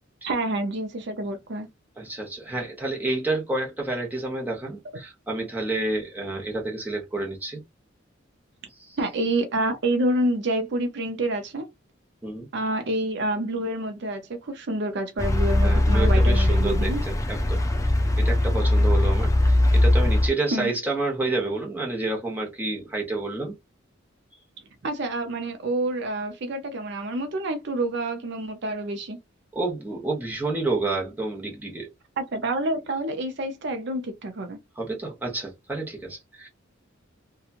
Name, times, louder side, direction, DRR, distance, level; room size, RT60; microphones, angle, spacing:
voice 1, 0.2-1.7 9.0-11.7 12.5-17.0 20.5-20.7 24.8-29.2 32.2-34.6, right 1 dB, 60° right, 0.6 m, -28 dB
voice 2, 2.0-7.6 8.8-9.0 12.2-12.5 15.6-17.6 18.2-23.5 29.5-31.9 34.8-36.5, right 2 dB, 10° right, 0.9 m, -29 dB
sound 1, 15.2-20.3, left 1 dB, 15° left, 0.5 m, -20 dB
2.8 x 2.3 x 2.5 m
head